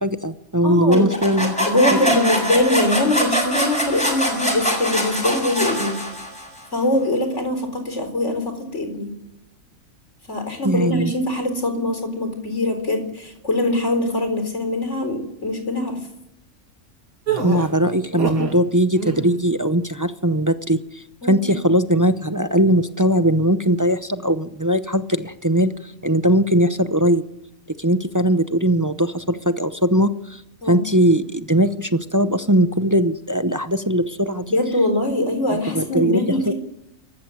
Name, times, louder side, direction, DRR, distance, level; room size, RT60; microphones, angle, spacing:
voice 1, 0.0-2.0 10.6-11.1 17.4-27.2 27.8-34.6 35.7-36.5, equal, 20° right, 10 dB, 0.6 m, -20 dB
voice 2, 0.6-1.0 1.7-6.0 6.7-9.1 10.3-16.0 21.2-21.5 30.6-30.9 34.5-36.5, left 1 dB, 55° left, 6 dB, 4.7 m, -22 dB
sound 1, 0.9-6.6, equal, 5° left, 7.5 m, -23 dB
sound 2, 17.3-18.6 18.9-19.4, right 6 dB, 80° right, 2.8 m, -26 dB
26.5 x 14.5 x 9.3 m, 0.86 s
omnidirectional pair, 1.5 m